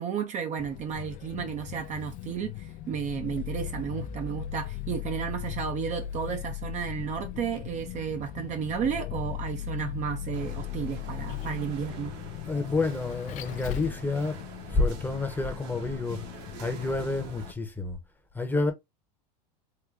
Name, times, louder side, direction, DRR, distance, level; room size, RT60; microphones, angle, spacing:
voice 1, 0.0-12.1, right 7 dB, 35° right, 0.6 m, -33 dB
Vehicle, 0.6-17.5, left 12 dB, 40° left, 0.4 m, -38 dB
sound 1, 10.3-17.5, right 7 dB, 55° right, 1.1 m, -47 dB
voice 2, 12.5-14.4 14.7-16.3 16.6-18.0 18.3-18.7, left 3 dB, 10° left, 0.8 m, -29 dB
3.7 x 2.2 x 3.4 m
supercardioid pair, 120°, 21 cm